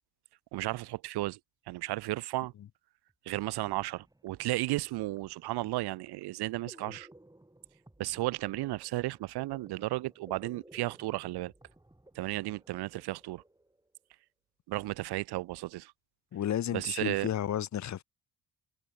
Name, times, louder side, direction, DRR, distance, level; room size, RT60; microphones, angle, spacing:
voice 1, 0.5-1.4 1.7-2.5 3.2-7.1 8.0-11.5 12.1-13.4 14.7-15.9 16.7-17.3, right 17 dB, 85° right, 1.0 m, -34 dB
sound 1, 3.1-3.2 3.4-14.0, right 1 dB, 10° right, 7.2 m, -58 dB
voice 2, 16.3-18.0, left 10 dB, 45° left, 0.8 m, -32 dB
cardioid pair, 85°, 38 cm